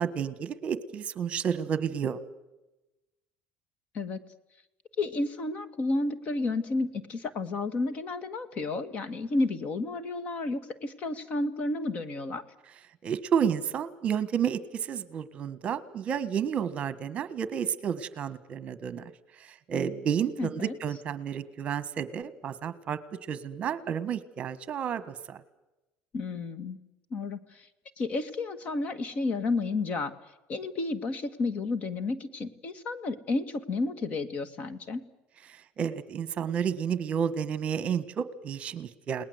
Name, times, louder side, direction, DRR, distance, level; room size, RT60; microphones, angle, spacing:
voice 1, 0.0-2.2 13.0-19.1 19.4-23.0 23.3-25.0 25.3-25.4 35.5-39.2, right 8 dB, 35° right, 14 dB, 1.5 m, -31 dB
voice 2, 5.0-12.4 20.4-20.7 26.1-26.8 27.1-27.7 28.0-30.1 30.5-35.0, left 3 dB, 40° left, 13 dB, 1.8 m, -31 dB
30.0 x 19.5 x 8.0 m, 1.0 s
cardioid pair, 140°, 3 cm